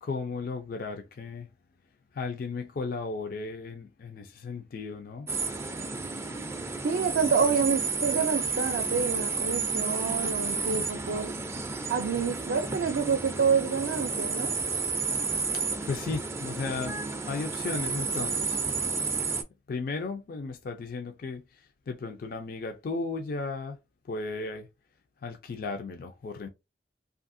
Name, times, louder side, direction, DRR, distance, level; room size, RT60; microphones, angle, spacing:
voice 1, 0.0-1.5 2.1-5.3 15.5-17.0 17.3-18.6 19.7-21.4 21.9-23.8 24.1-24.7 25.2-26.5, left 4 dB, 55° left, 0.4 m, -35 dB
sound 1, 5.3-19.4, right 4 dB, 15° right, 0.3 m, -31 dB
voice 2, 6.8-11.3 11.9-14.6, right 6 dB, 80° right, 0.4 m, -28 dB
2.7 x 2.5 x 2.5 m
head